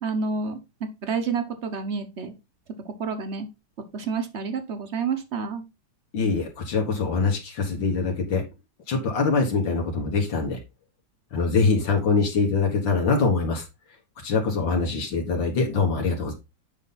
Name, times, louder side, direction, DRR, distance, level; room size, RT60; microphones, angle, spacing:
voice 1, 0.0-2.3 2.8-3.5 3.9-5.6, right 5 dB, 40° right, 8 dB, 1.1 m, -29 dB
voice 2, 6.1-8.4 8.9-10.6 11.3-13.6 14.2-16.3, left 4 dB, 70° left, 2 dB, 2.1 m, -23 dB
8.1 x 5.4 x 4.0 m, 0.25 s
omnidirectional pair, 2.2 m